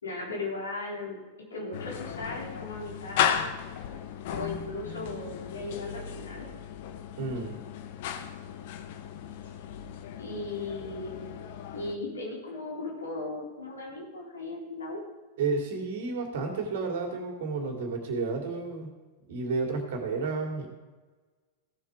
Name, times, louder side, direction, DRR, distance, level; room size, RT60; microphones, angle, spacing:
voice 1, 0.0-1.2 1.5-3.7 4.3-6.5 9.4-9.6 10.2-11.3 11.7-15.0, left 2 dB, 70° left, -3 dB, 3.9 m, -37 dB
sound 1, 1.7-12.0, left 9 dB, 50° left, 1.0 m, -35 dB
voice 2, 7.2-7.6 15.4-18.9 19.3-20.7, right 4 dB, 55° right, 3 dB, 2.5 m, -31 dB
16.0 x 7.4 x 4.9 m, 1.3 s
figure-of-eight pair, 90°, 0 cm